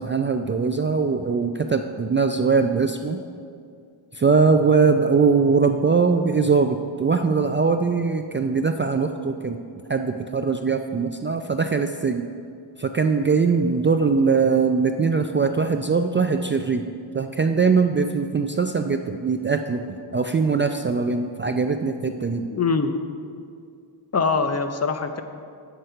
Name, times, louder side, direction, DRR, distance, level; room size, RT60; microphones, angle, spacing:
voice 1, 0.0-3.2 4.1-9.6 9.9-12.2 12.8-16.8 17.1-19.8 20.1-22.5, right 5 dB, 25° right, 6 dB, 0.3 m, -21 dB
voice 2, 22.5-22.9 24.1-25.2, left 4 dB, 35° left, 8 dB, 0.6 m, -23 dB
8.1 x 7.7 x 5.7 m, 2.3 s
wide cardioid pair, 95°, 47 cm